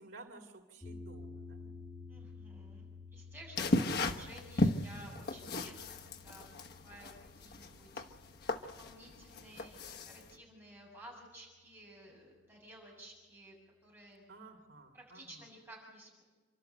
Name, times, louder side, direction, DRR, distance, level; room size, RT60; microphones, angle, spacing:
voice 1, 0.0-1.8 14.3-15.5, right 2 dB, 80° right, 2 dB, 3.0 m, -54 dB
sound 1, 0.8-11.0, left 4 dB, 20° left, 2.2 m, -53 dB
voice 2, 2.1-5.8 6.2-6.5 6.8-8.2 8.8-13.6 13.8-14.3 14.9-16.2, right 1 dB, 15° right, -2 dB, 7.2 m, -54 dB
sound 2, 3.6-10.3, left 2 dB, 60° left, 1.2 m, -35 dB
28.5 x 12.5 x 8.1 m, 1.2 s
head